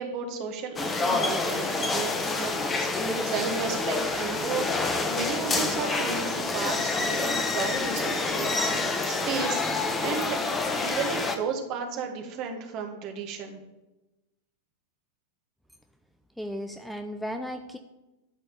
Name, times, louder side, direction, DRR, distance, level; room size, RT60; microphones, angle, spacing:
voice 1, 0.0-8.8 9.0-10.4 10.8-13.6, right 6 dB, 40° right, 4 dB, 1.7 m, -34 dB
sound 1, 0.8-11.4, left 3 dB, 20° left, 1.2 m, -27 dB
voice 2, 16.4-17.8, equal, ahead, 6 dB, 0.6 m, -35 dB
12.0 x 4.4 x 8.0 m, 1.0 s
figure-of-eight pair, 90°, 0 cm